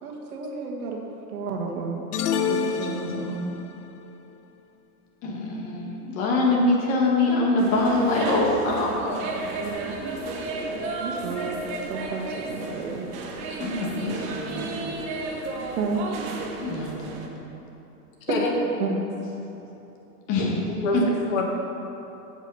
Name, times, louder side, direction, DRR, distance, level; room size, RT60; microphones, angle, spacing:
voice 1, 0.0-1.0 1.3-2.0 2.5-3.5 11.0-11.6 11.9-13.1 15.8-16.0 18.3-18.4 18.8-19.0, right 5 dB, 65° right, 0 dB, 1.7 m, -31 dB
sound 1, 2.1-3.7, left 6 dB, 70° left, 0.8 m, -27 dB
voice 2, 5.2-9.3 13.6-14.8 16.6-17.2 20.3-20.6 20.9-21.0, left 2 dB, 35° left, -2 dB, 1.9 m, -24 dB
sound 2, 7.6-17.3, right 3 dB, 15° right, 0.4 m, -33 dB
voice 3, 20.8-21.4, left 3 dB, 55° left, 0 dB, 1.9 m, -26 dB
8.2 x 7.3 x 5.6 m, 3.0 s
hypercardioid pair, 130°, 47 cm